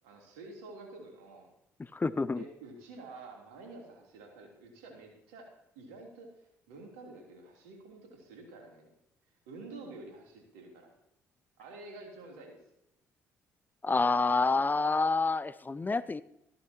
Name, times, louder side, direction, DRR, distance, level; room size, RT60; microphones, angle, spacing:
voice 1, 0.0-1.5 2.3-5.5 5.7-6.3 6.7-8.9 9.5-10.9 11.6-12.6, right 3 dB, 85° right, 0 dB, 3.2 m, -49 dB
voice 2, 1.9-2.4 13.8-16.2, left 3 dB, 25° left, 16 dB, 0.6 m, -28 dB
14.5 x 12.5 x 2.9 m, 0.84 s
hypercardioid pair, 55°, 8 cm